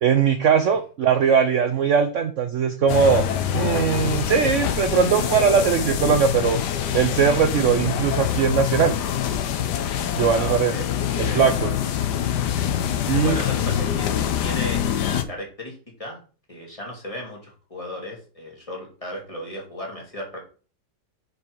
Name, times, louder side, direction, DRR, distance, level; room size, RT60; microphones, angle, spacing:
voice 1, 0.0-3.2 3.5-6.6 6.9-8.9 10.1-10.7 11.2-11.7 13.1-13.4, right 7 dB, 65° right, 8 dB, 0.7 m, -20 dB
sound 1, 2.9-15.2, left 9 dB, 70° left, 1.3 m, -25 dB
voice 2, 10.3-10.9 11.2-11.4 13.2-16.2 16.5-20.4, left 1 dB, 20° left, -1 dB, 2.1 m, -35 dB
6.5 x 5.2 x 4.6 m, 0.37 s
omnidirectional pair, 2.0 m